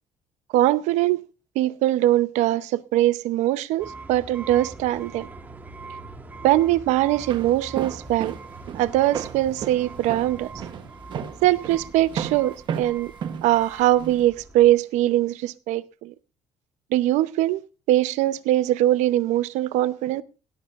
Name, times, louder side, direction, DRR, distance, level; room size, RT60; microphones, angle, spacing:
voice 1, 0.5-1.2 1.6-5.3 6.4-8.4 8.7-10.5 11.4-13.1 13.4-16.1 16.9-17.6 17.9-20.2, right 14 dB, 80° right, 0.7 m, -21 dB
sound 1, 3.8-14.7, right 3 dB, 15° right, 1.3 m, -42 dB
Walk footsteps, 7.1-14.2, right 8 dB, 40° right, 1.0 m, -34 dB
18.0 x 12.0 x 2.5 m
cardioid pair, 175°, 12 cm